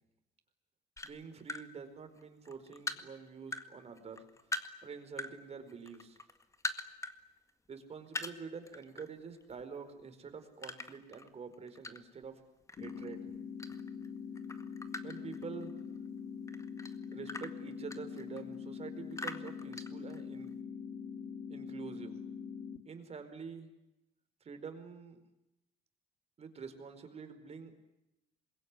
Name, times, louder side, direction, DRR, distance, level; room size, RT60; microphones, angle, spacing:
sound 1, 1.0-1.7 2.2-3.7 4.0-5.3 5.7-7.2 7.5-7.6 8.1-9.1 9.4-9.6 10.6-12.2 12.7-14.1 14.4-16.0 16.5-18.5 19.1-20.5, left 2 dB, 20° left, 1.9 m, -42 dB
voice 1, 1.0-6.2 7.7-12.4 12.8-13.3 15.0-15.7 17.1-20.5 21.5-22.2 22.8-23.7 24.4-25.2 26.4-27.8, right 5 dB, 40° right, 8 dB, 4.8 m, -47 dB
sound 2, 12.8-22.8, left 6 dB, 40° left, 2.5 m, -44 dB
26.5 x 22.0 x 9.8 m, 0.92 s
cardioid pair, 110°, 17 cm